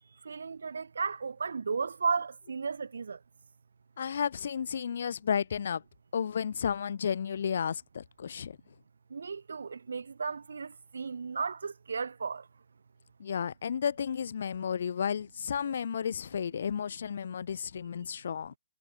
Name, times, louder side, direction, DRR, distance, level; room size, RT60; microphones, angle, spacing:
voice 1, 0.2-3.2 9.1-12.5, right 5 dB, 75° right, 7.1 m, -34 dB
voice 2, 4.0-5.8 6.1-8.6 13.2-18.5, left 7 dB, 45° left, 1.9 m, -32 dB
hypercardioid pair, 180°, 0 cm